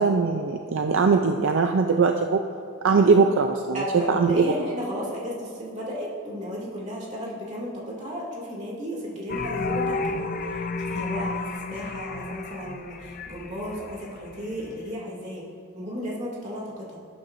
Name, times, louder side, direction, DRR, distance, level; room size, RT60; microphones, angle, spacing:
voice 1, 0.0-2.4 2.8-4.5, right 4 dB, 60° right, 5 dB, 0.4 m, -21 dB
voice 2, 2.9-3.3 3.7-10.3 10.9-15.4 15.7-17.0, equal, 35° right, -5 dB, 2.3 m, -34 dB
sound 1, 9.3-14.8, left 3 dB, 40° left, 0.4 m, -32 dB
17.0 x 9.2 x 2.6 m, 2.3 s
head